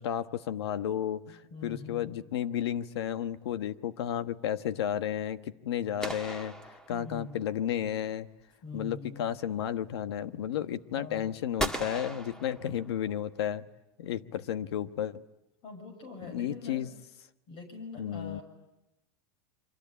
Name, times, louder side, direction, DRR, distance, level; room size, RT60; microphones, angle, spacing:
voice 1, 0.0-6.5 6.9-8.3 8.7-13.6 14.0-15.2 16.2-16.9 18.0-18.4, left 10 dB, 85° left, 11 dB, 1.3 m, -33 dB
voice 2, 1.5-2.1 6.9-7.4 8.6-9.2 11.0-11.3 15.6-16.9 17.5-18.4, left 4 dB, 40° left, 6 dB, 6.4 m, -43 dB
sound 1, 6.0-7.5 11.6-13.2, right 1 dB, 5° left, 1.8 m, -37 dB
28.0 x 25.0 x 8.5 m, 0.92 s
supercardioid pair, 130°, 13 cm